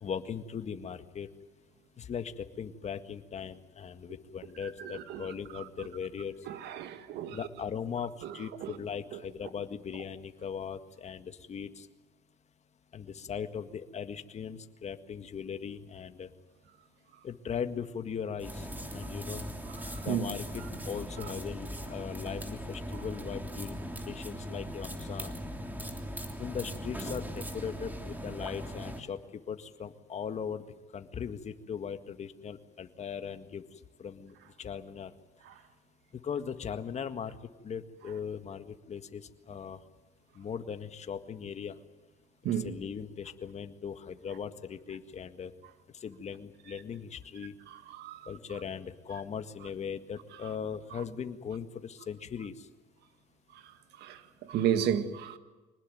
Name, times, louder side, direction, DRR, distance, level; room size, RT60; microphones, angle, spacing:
voice 1, 0.0-1.3 2.0-6.3 7.3-11.9 12.9-16.3 17.2-18.7 18.9-19.4 20.0-25.3 26.4-29.2 29.5-30.6 30.9-33.6 34.0-35.1 36.2-37.4 37.6-39.8 40.4-41.7 42.6-45.5 46.0-47.5 48.3-52.5, left 7 dB, 40° left, 1.8 m, -39 dB
voice 2, 4.8-5.3 6.5-7.4 8.2-8.3 8.6-8.7 19.9-20.2 42.4-42.7 48.0-48.2 54.0-55.4, right 9 dB, 80° right, 1.9 m, -32 dB
sound 1, 18.4-29.0, equal, 10° right, 3.1 m, -39 dB
25.5 x 19.5 x 9.2 m
cardioid pair, 110°, 17 cm